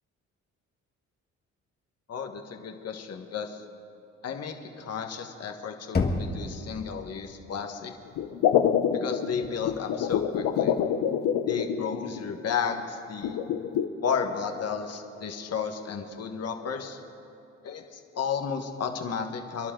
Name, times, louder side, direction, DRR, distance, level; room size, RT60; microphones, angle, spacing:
voice 1, 2.1-3.6 4.2-7.9 8.9-10.7 11.5-13.4 14.0-17.0 17.6-19.7, left 6 dB, 55° left, 5 dB, 1.5 m, -33 dB
Knock, 5.9-6.9, left 3 dB, 35° left, 1.6 m, -28 dB
sound 1, 8.2-12.3 13.2-13.9, left 9 dB, 80° left, 0.9 m, -26 dB
28.5 x 11.5 x 3.8 m, 2.6 s
cardioid pair, 90°, 30 cm